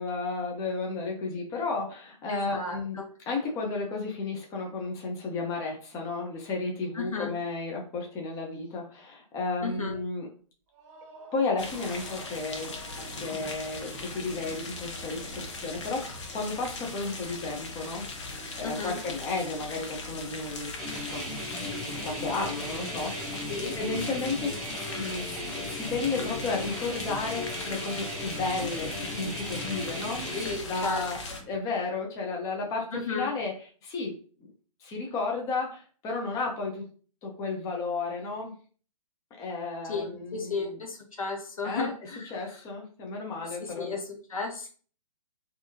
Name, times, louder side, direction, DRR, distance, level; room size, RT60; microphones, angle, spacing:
voice 1, 0.0-3.0 3.3-10.3 11.3-12.7 13.0-16.1 16.3-20.7 21.1-21.2 21.6-21.7 22.0-30.4 30.7-31.2 31.5-33.6 33.8-34.1 34.4-34.5 34.8-36.9 37.2-38.6 39.4-40.8 41.6-41.9 42.2-44.0, left 3 dB, 20° left, 0 dB, 0.8 m, -33 dB
voice 2, 2.3-3.0 6.9-7.3 9.6-9.9 18.6-19.0 23.5-23.8 30.3-31.0 31.3-31.4 32.9-33.3 39.9-42.5 43.6-44.7, left 4 dB, 70° left, 1 dB, 1.3 m, -34 dB
sound 1, 10.7-14.7, right 3 dB, 35° right, 1.6 m, -51 dB
sound 2, 11.6-31.4, left 3 dB, 55° left, 1.1 m, -39 dB
sound 3, 20.8-30.6, left 1 dB, ahead, 1.2 m, -36 dB
4.5 x 2.9 x 2.9 m, 0.41 s
figure-of-eight pair, 130°, 18 cm